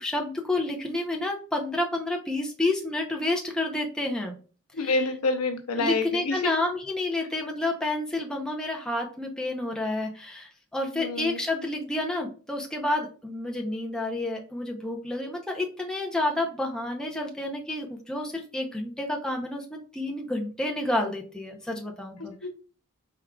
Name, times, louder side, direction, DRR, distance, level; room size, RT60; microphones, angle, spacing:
voice 1, 0.0-4.4 4.8-5.0 5.8-22.3, left 2 dB, 5° left, 1 dB, 0.6 m, -30 dB
voice 2, 4.7-6.5 10.9-11.4 22.2-22.5, left 3 dB, 80° left, 5 dB, 0.7 m, -28 dB
4.5 x 3.7 x 2.2 m, 0.38 s
head